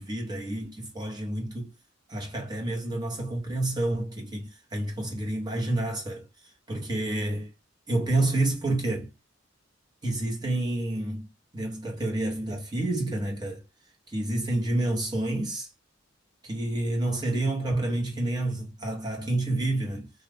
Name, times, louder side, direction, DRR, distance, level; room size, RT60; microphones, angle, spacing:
voice 1, 0.0-1.7 2.1-6.3 6.7-7.5 7.9-9.1 10.0-13.6 14.1-15.7 16.4-20.1, right 1 dB, 20° right, 1.3 m, -29 dB
2.8 x 2.4 x 3.5 m
head